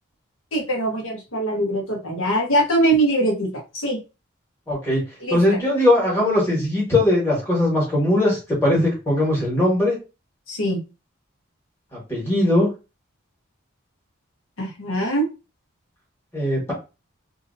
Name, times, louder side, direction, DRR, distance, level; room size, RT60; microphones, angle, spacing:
voice 1, 0.5-4.0 5.2-5.6 10.5-10.8 14.6-15.2, right 1 dB, 90° left, 0 dB, 1.2 m, -22 dB
voice 2, 4.7-5.0 5.3-10.0 12.1-12.7 16.3-16.7, left 1 dB, 10° left, -5 dB, 1.5 m, -19 dB
2.8 x 2.7 x 2.6 m, 0.29 s
head